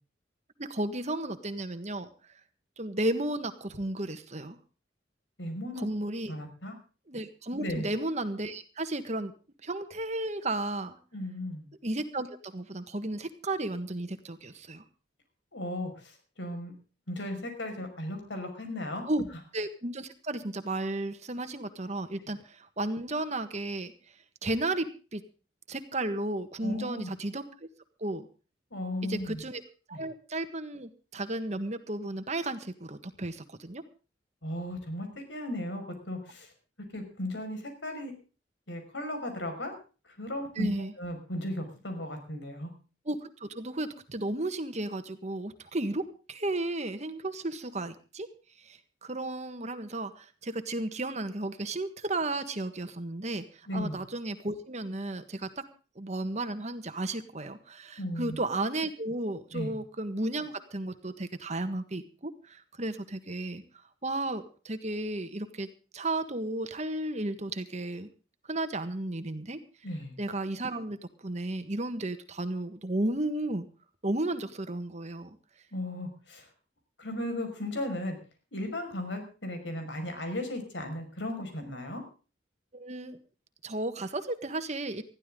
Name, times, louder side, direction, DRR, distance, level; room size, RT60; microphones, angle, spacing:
voice 1, 0.6-2.1 2.8-4.6 5.8-6.3 7.1-9.3 9.6-11.0 11.8-14.8 19.1-19.2 19.5-23.9 24.4-25.2 25.7-27.7 28.0-28.3 29.0-29.6 29.9-33.8 40.5-40.9 43.0-48.3 48.6-55.6 55.9-65.7 65.9-68.1 68.5-69.6 70.2-73.7 74.0-75.4 82.7-83.2 83.6-85.0, right 2 dB, 40° right, 9 dB, 1.5 m, -33 dB
voice 2, 5.4-5.9 6.3-6.7 7.6-7.9 11.1-11.7 15.5-16.7 17.1-19.0 26.6-27.1 28.7-29.4 29.9-30.0 34.4-36.5 36.9-38.1 38.7-39.7 40.2-40.7 41.0-42.7 53.7-54.0 58.0-58.4 59.5-59.7 69.8-70.2 75.7-76.5 77.0-78.1 78.5-82.0, left 1 dB, 85° left, 5 dB, 5.7 m, -36 dB
20.5 x 14.5 x 3.8 m, 0.36 s
head